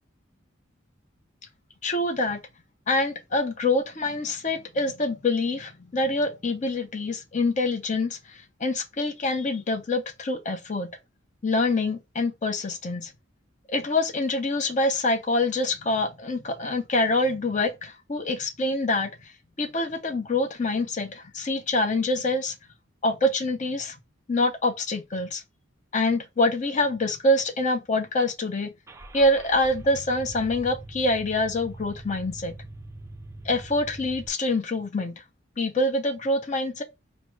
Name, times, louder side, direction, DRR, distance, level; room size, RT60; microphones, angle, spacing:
voice 1, 1.8-2.4 2.9-10.9 11.4-13.1 13.7-19.1 19.6-22.5 23.0-24.0 24.3-25.4 25.9-28.7 29.1-32.5 33.4-35.1 35.6-36.8, left 2 dB, 40° left, 0.6 m, -25 dB
Car / Engine starting, 28.9-34.3, right 2 dB, 15° right, 0.3 m, -42 dB
4.7 x 2.0 x 3.1 m
head